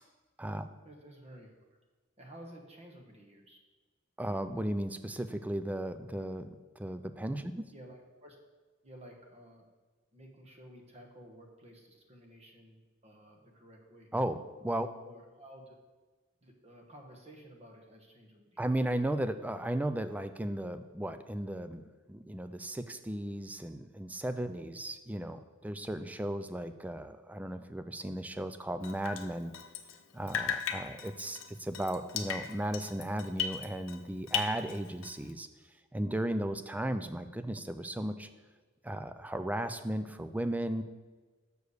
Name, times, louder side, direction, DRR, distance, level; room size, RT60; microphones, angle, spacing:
voice 1, 0.8-1.5 2.2-3.6 7.7-8.4 8.8-9.6 10.1-14.1 15.0-15.8 16.4-18.7, right 1 dB, 35° right, 2 dB, 1.2 m, -53 dB
voice 2, 4.2-7.6 14.1-14.9 18.6-29.5 30.1-35.5 35.9-38.3 38.8-40.8, right 1 dB, 10° right, 10 dB, 0.4 m, -35 dB
Drip, 28.8-30.0 30.3-34.0 34.3-35.3, left 7 dB, 85° left, 0.6 m, -37 dB
6.7 x 4.8 x 6.5 m, 1.4 s
head